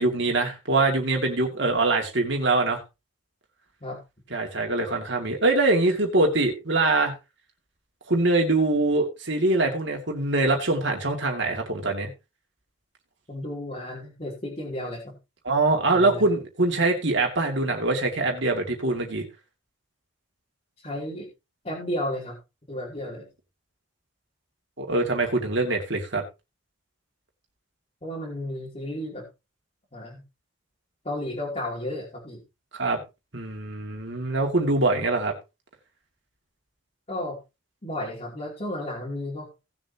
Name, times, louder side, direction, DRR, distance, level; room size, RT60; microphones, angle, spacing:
voice 1, 0.0-2.8 4.3-7.1 8.1-12.1 15.4-19.3 24.8-26.2 32.7-33.0 33.3-35.3, right 2 dB, 60° right, 1 dB, 2.3 m, -23 dB
voice 2, 13.3-15.1 15.9-16.3 20.8-21.3 21.6-22.4 22.7-23.2 28.0-29.2 29.9-30.2 31.0-32.4 37.1-37.4 37.8-39.5, left 1 dB, 30° left, -5 dB, 3.0 m, -33 dB
18.0 x 7.2 x 2.9 m, 0.26 s
head